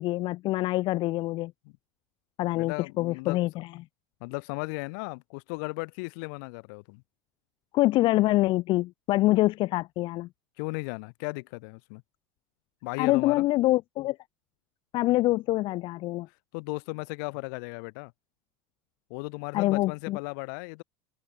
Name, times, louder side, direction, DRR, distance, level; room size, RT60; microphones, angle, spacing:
voice 1, 0.0-1.5 2.4-3.7 7.7-10.3 13.0-14.2 14.9-16.3 19.5-20.2, left 18 dB, 50° left, 1.3 m, -25 dB
voice 2, 2.5-3.4 4.2-7.0 10.6-12.0 12.8-13.4 16.5-18.1 19.1-20.8, left 32 dB, 70° left, 6.5 m, -36 dB
supercardioid pair, 125°, 11 cm